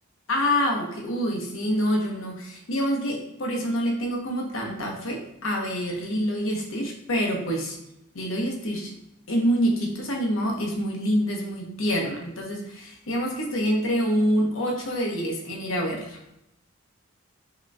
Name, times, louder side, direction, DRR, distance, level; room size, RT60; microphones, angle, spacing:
voice 1, 0.3-7.8 8.1-8.9 9.3-16.2, equal, 75° left, 0 dB, 0.9 m, -26 dB
4.9 x 3.0 x 2.3 m, 0.84 s
head